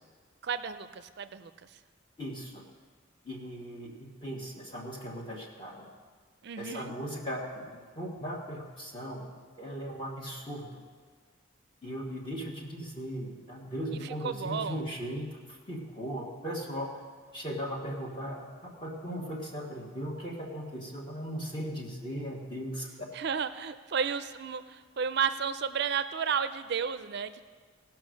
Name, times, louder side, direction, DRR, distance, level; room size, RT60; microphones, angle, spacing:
voice 1, 0.4-1.5 6.4-6.9 14.0-14.8 23.1-27.4, right 6 dB, 50° right, 12 dB, 0.4 m, -32 dB
voice 2, 2.2-2.6 3.2-5.9 6.6-9.3 9.6-10.8 11.8-16.9 17.3-23.1, equal, 25° left, -2 dB, 1.2 m, -38 dB
17.0 x 5.9 x 6.3 m, 1.5 s
head